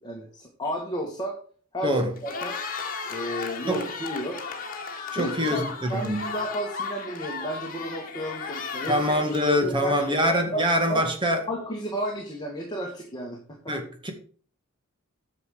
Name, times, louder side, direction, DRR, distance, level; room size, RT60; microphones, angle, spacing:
voice 1, 0.0-1.4 1.7-2.6 3.1-4.4 5.2-9.2 9.6-10.2 10.5-10.6 10.9-11.1 11.5-13.7, equal, 20° left, 1.9 m, -33 dB
voice 2, 1.8-2.1 3.7-3.8 5.1-6.3 8.9-11.4 13.7-14.1, equal, 20° right, 2.0 m, -24 dB
Cheering, 2.1-10.4, left 5 dB, 40° left, 1.9 m, -35 dB
9.6 x 7.1 x 5.0 m
head